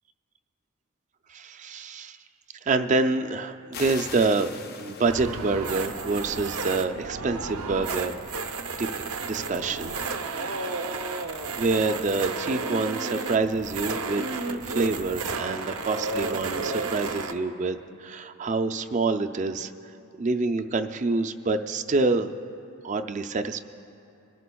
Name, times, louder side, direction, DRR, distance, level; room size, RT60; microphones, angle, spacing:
voice 1, 1.3-2.2 2.7-8.2 8.8-8.9 9.3-9.9 10.3-11.0 11.6-19.7 20.2-22.3 22.8-23.6, right 3 dB, 35° right, 8 dB, 0.4 m, -27 dB
sound 1, 3.7-6.3, left 6 dB, 45° left, 0.5 m, -41 dB
sound 2, 5.1-17.3, right 3 dB, 85° right, 0.7 m, -32 dB
28.0 x 11.0 x 2.3 m, 2.8 s
head